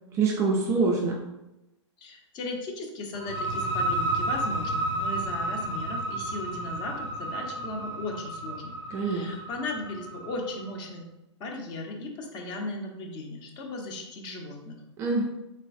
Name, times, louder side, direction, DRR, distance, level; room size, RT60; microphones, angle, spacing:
voice 1, 0.1-1.2 8.9-9.3 15.0-15.2, right 4 dB, 20° right, 0 dB, 0.3 m, -25 dB
voice 2, 2.0-11.0 11.4-14.8, left 2 dB, 25° left, 2 dB, 0.6 m, -37 dB
sound 1, 3.1-10.6, right 1 dB, 80° left, 0.6 m, -32 dB
3.3 x 3.0 x 2.5 m, 0.95 s
figure-of-eight pair, 110°, 15 cm